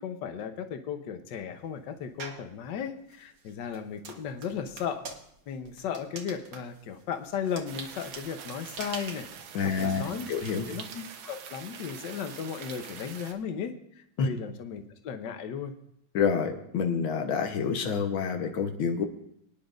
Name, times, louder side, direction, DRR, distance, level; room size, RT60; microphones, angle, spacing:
voice 1, 0.0-5.0 5.5-9.3 9.6-10.3 10.7-15.7, left 7 dB, 70° left, 7 dB, 1.5 m, -36 dB
sound 1, 2.2-2.5 3.1-10.5, right 4 dB, 50° right, 1.5 m, -44 dB
sound 2, 7.7-13.3, right 7 dB, 90° right, 1.7 m, -45 dB
voice 2, 9.5-10.7 14.2-14.3 16.1-19.1, left 6 dB, 85° left, 5 dB, 1.8 m, -28 dB
24.0 x 10.0 x 2.6 m, 0.73 s
omnidirectional pair, 2.1 m